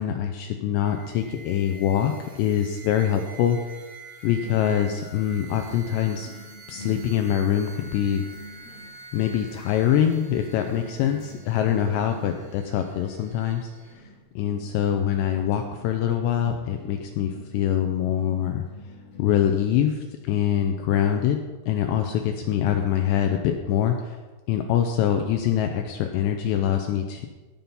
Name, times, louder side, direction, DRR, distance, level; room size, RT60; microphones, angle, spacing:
voice 1, 0.0-3.6 4.2-6.3 6.7-8.2 9.1-13.7 14.4-18.6 19.2-21.4 21.7-24.2 24.5-27.3, left 10 dB, 90° left, 5 dB, 2.5 m, -24 dB
sound 1, 0.8-13.9, right 3 dB, 65° right, 1.9 m, -47 dB
sound 2, 4.3-19.8, equal, 55° left, 1.9 m, -46 dB
18.0 x 5.9 x 5.5 m, 1.2 s
omnidirectional pair, 5.8 m